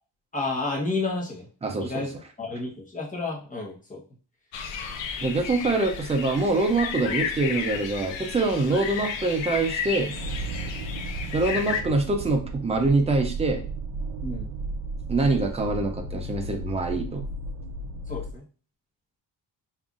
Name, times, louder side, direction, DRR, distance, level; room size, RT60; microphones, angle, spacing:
voice 1, 0.3-1.5 1.8-4.0 14.2-14.5 18.1-18.4, left 3 dB, 15° left, -3 dB, 0.9 m, -31 dB
voice 2, 1.6-2.1 5.2-10.1 11.3-13.6 15.1-17.2, right 3 dB, 15° right, 4 dB, 0.3 m, -24 dB
sound 1, 4.5-11.8, left 6 dB, 70° left, 0.7 m, -33 dB
sound 2, 10.1-18.4, right 2 dB, 65° right, 0.6 m, -34 dB
5.4 x 2.4 x 2.4 m, 0.38 s
wide cardioid pair, 170°, 46 cm